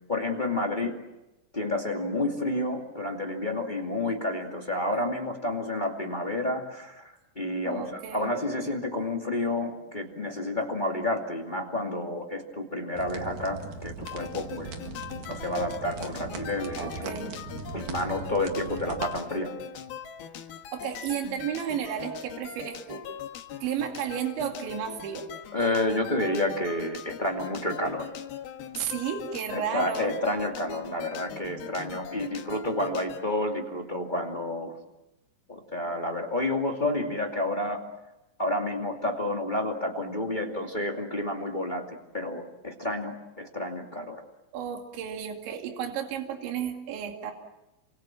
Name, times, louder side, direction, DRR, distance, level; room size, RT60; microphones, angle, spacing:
voice 1, 0.1-0.9 1.5-14.8 15.2-17.2 17.7-19.5 25.5-28.1 29.5-34.8 35.5-37.8 38.4-44.2, left 1 dB, 20° left, 1 dB, 1.1 m, -30 dB
voice 2, 7.7-8.3 16.8-17.3 20.7-23.0 23.6-25.3 28.8-30.1 44.5-47.3, right 8 dB, 75° right, 3 dB, 4.6 m, -33 dB
sound 1, 12.9-19.2, right 5 dB, 55° right, 3.1 m, -40 dB
sound 2, 14.1-33.3, left 9 dB, 65° left, 3.1 m, -41 dB
29.0 x 26.5 x 7.6 m, 0.99 s
omnidirectional pair, 5.3 m